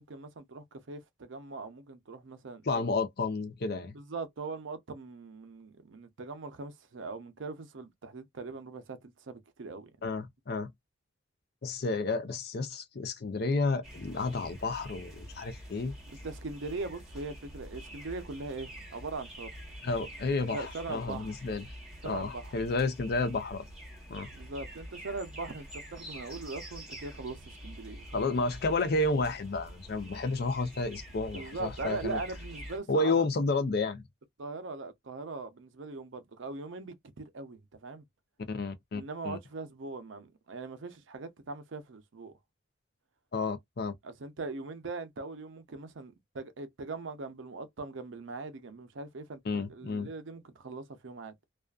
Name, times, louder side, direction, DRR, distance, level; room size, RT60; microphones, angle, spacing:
voice 1, 0.0-2.8 3.9-9.9 16.2-19.5 20.5-21.4 22.0-22.6 24.3-28.3 31.3-33.2 34.4-38.0 38.9-42.3 44.0-51.3, right 3 dB, 70° right, 0.6 m, -41 dB
voice 2, 2.7-4.0 10.0-10.7 11.6-15.9 19.8-21.7 22.0-23.6 24.1-24.3 28.1-32.2 32.9-34.0 38.5-39.4 43.3-43.9 49.5-50.1, left 3 dB, 50° left, 0.5 m, -31 dB
sound 1, 13.8-32.8, right 1 dB, 5° right, 1.1 m, -46 dB
2.4 x 2.4 x 2.3 m
head